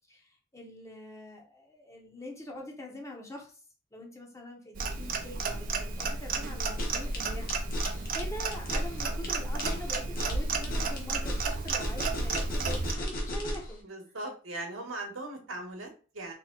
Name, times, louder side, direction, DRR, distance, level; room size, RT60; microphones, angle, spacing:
voice 1, 0.1-3.6 3.9-13.9, left 1 dB, 15° left, 0 dB, 0.7 m, -44 dB
Clock, 4.7-12.9, right 3 dB, 45° right, 0.5 m, -32 dB
sound 1, 6.6-13.7, left 1 dB, 45° left, 1.0 m, -35 dB
voice 2, 13.8-16.3, right 2 dB, 70° right, 2 dB, 1.1 m, -39 dB
2.9 x 2.7 x 3.7 m, 0.37 s
head